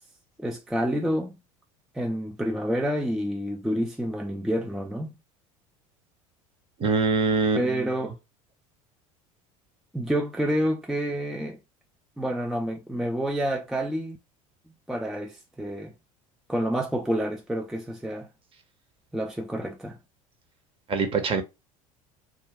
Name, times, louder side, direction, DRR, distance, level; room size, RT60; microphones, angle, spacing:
voice 1, 0.4-1.3 1.9-5.1 7.6-8.2 9.9-11.6 12.2-14.2 14.9-15.9 16.5-18.3 19.1-20.0, equal, ahead, 0.4 m, -28 dB
voice 2, 6.8-7.6 20.9-21.4, right 4 dB, 30° right, 0.7 m, -23 dB
2.3 x 2.2 x 3.4 m
figure-of-eight pair, 70°, 18 cm